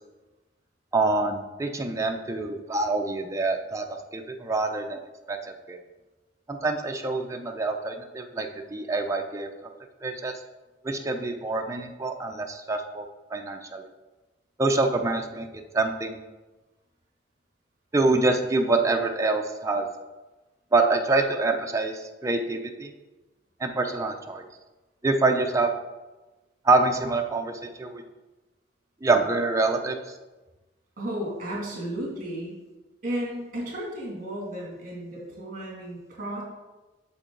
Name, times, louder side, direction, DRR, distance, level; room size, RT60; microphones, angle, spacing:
voice 1, 0.9-5.0 5.3-5.8 6.5-9.7 10.0-10.3 10.8-13.9 14.6-15.5 15.7-16.2 17.9-19.9 20.7-22.9 23.6-24.4 25.0-25.7 26.6-28.0 29.0-30.0, right 3 dB, 15° right, 3 dB, 0.5 m, -26 dB
voice 2, 31.0-32.5 33.0-36.4, right 1 dB, 45° right, -4 dB, 2.6 m, -33 dB
8.4 x 6.6 x 3.8 m, 1.2 s
head